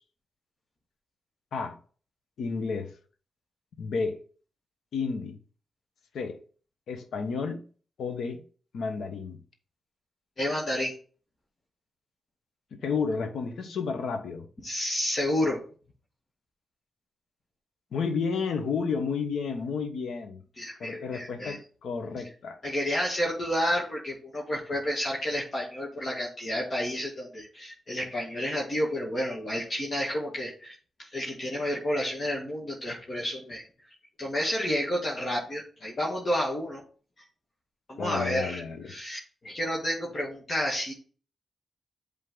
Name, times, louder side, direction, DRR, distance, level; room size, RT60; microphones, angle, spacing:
voice 1, 2.4-2.9 3.8-4.2 4.9-5.4 6.1-6.4 6.9-7.6 8.0-8.4 8.7-9.4 12.8-14.5 17.9-20.4 20.8-22.6 38.0-38.9, left 5 dB, 80° left, 7 dB, 1.1 m, -31 dB
voice 2, 10.4-11.0 14.6-15.6 20.6-21.6 22.6-33.7 34.2-36.8 37.9-40.9, equal, 45° left, -3 dB, 2.0 m, -30 dB
7.8 x 3.7 x 3.8 m, 0.40 s
cardioid pair, 60°, 0 cm